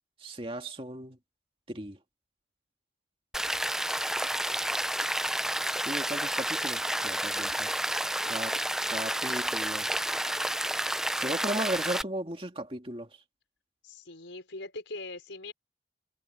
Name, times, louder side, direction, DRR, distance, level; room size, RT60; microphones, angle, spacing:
voice 1, 0.2-1.2 1.7-2.0 5.8-7.7 8.3-8.6 8.9-10.1 11.2-13.1, right 1 dB, 30° right, 2.3 m, -36 dB
Rain, 3.3-12.0, right 1 dB, 5° right, 0.4 m, -30 dB
voice 2, 8.0-8.3 13.8-15.5, left 2 dB, 90° left, 5.0 m, -42 dB
head